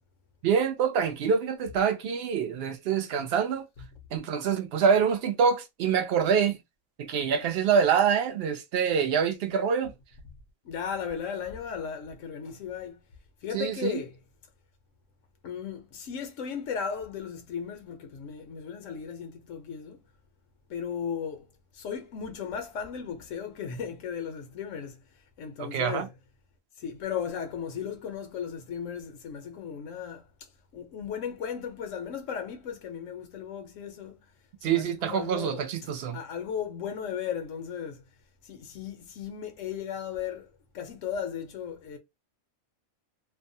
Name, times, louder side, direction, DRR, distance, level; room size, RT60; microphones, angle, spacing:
voice 1, 0.4-3.6 4.1-6.6 7.0-9.9 13.5-14.0 25.6-26.1 34.6-36.2, right 7 dB, 60° right, 0.7 m, -25 dB
voice 2, 10.6-13.0 13.4-14.2 15.4-20.0 20.7-21.5 21.7-25.0 25.4-26.1 26.8-30.2 30.7-34.2 34.7-35.6 36.1-38.0 38.4-42.0, left 7 dB, 70° left, 0.9 m, -36 dB
2.6 x 2.1 x 2.6 m
omnidirectional pair, 1.5 m